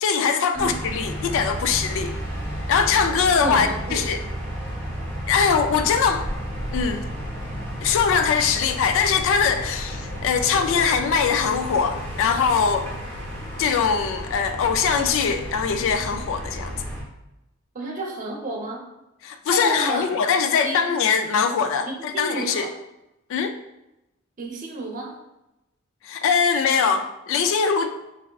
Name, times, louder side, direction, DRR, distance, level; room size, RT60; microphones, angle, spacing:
voice 1, 0.0-2.1 2.7-4.2 5.2-6.3 6.7-7.1 7.8-12.9 13.6-16.8 19.2-22.7 23.3-23.6 26.0-28.0, left 6 dB, 65° left, 7 dB, 0.3 m, -22 dB
sound 1, 0.5-17.0, equal, 10° left, 0.9 m, -32 dB
voice 2, 3.4-4.0 17.7-18.8 19.5-20.0 20.6-20.8 21.9-22.7 24.4-25.2, right 2 dB, 40° right, -2 dB, 0.7 m, -30 dB
3.5 x 3.3 x 2.3 m, 0.93 s
head